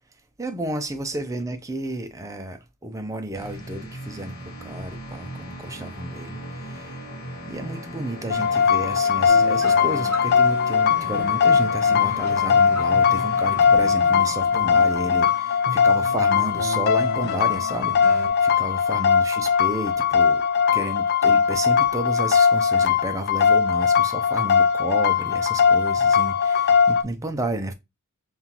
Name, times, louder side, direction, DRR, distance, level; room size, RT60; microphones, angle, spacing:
voice 1, 0.4-4.4 4.6-7.0 7.5-20.4 20.7-27.7, right 1 dB, 15° right, 0.5 m, -32 dB
sound 1, 3.3-14.4, equal, 80° left, 1.1 m, -38 dB
sound 2, 8.3-27.0, left 6 dB, 45° left, 0.4 m, -20 dB
sound 3, 9.3-18.3, right 1 dB, 65° right, 1.2 m, -36 dB
5.5 x 2.4 x 2.9 m
head